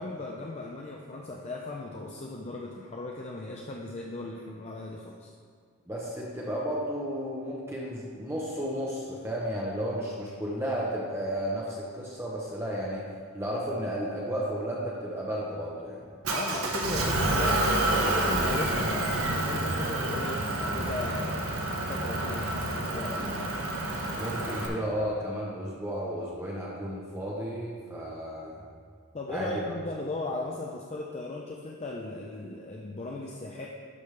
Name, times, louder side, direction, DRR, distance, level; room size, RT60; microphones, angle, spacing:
voice 1, 0.0-5.3 16.3-17.7 17.9-21.6 21.9-23.6 29.1-33.7, left 2 dB, 30° left, -1 dB, 0.5 m, -37 dB
voice 2, 5.9-13.0 13.3-16.0 24.1-28.6 29.3-29.6, equal, 10° right, -4 dB, 0.8 m, -33 dB
Motor vehicle (road) / Engine, 16.2-24.7, right 1 dB, 80° right, 1.0 m, -28 dB
12.0 x 5.2 x 3.3 m, 2.1 s
head